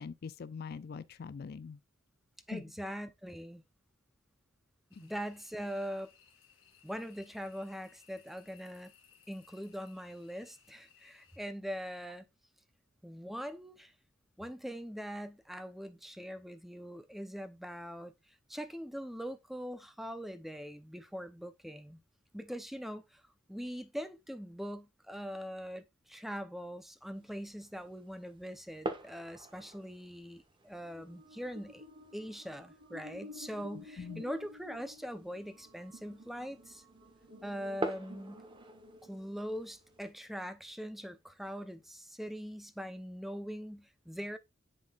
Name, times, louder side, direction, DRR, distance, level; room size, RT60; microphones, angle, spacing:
voice 1, 0.0-1.8 2.5-2.6 5.0-5.1 34.0-34.2, left 5 dB, 55° left, 0.4 m, -43 dB
voice 2, 2.5-3.6 4.9-6.1 6.8-8.9 9.3-12.3 13.0-13.9 14.4-18.1 18.5-22.0 22.3-23.2 23.5-31.8 32.1-36.8 37.4-38.4 39.0-44.4, equal, ahead, 0.6 m, -42 dB
sound 1, 4.9-11.4, left 8 dB, 90° left, 1.8 m, -64 dB
sound 2, 27.1-40.1, right 1 dB, 25° right, 1.1 m, -47 dB
sound 3, 30.8-40.2, left 1 dB, 75° right, 2.2 m, -54 dB
10.5 x 3.8 x 2.3 m
head